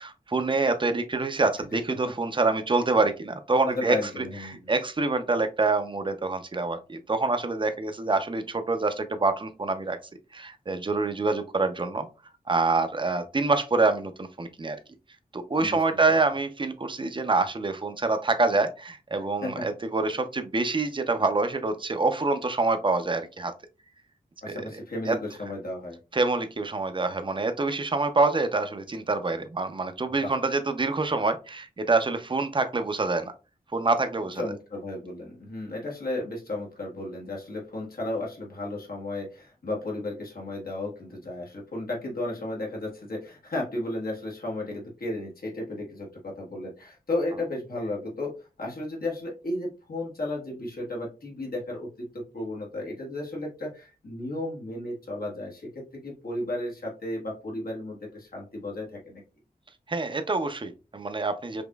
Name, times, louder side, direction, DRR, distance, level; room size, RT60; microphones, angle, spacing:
voice 1, 0.0-4.0 4.5-10.0 10.3-12.1 12.5-14.8 15.3-23.5 24.5-24.6 25.1-25.2 26.1-33.3 33.7-34.4 59.9-61.6, right 3 dB, 35° right, 9 dB, 0.6 m, -26 dB
voice 2, 3.6-4.7 15.6-15.8 16.1-16.2 19.1-19.7 21.2-21.3 24.4-26.0 30.2-30.3 34.3-48.3 48.6-59.2, left 1 dB, 80° left, -2 dB, 1.4 m, -34 dB
5.1 x 2.9 x 2.3 m, 0.30 s
wide cardioid pair, 100°, 15 cm